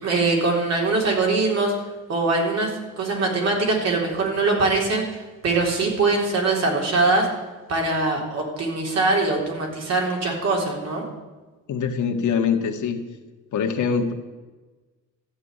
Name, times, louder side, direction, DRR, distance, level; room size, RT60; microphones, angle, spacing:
voice 1, 0.0-1.7 2.1-7.3 7.7-11.0, right 3 dB, 55° right, 0 dB, 3.8 m, -22 dB
voice 2, 11.7-13.0 13.5-14.1, left 6 dB, 65° left, 4 dB, 1.7 m, -23 dB
13.5 x 7.4 x 10.0 m, 1.2 s
cardioid pair, 160°, 32 cm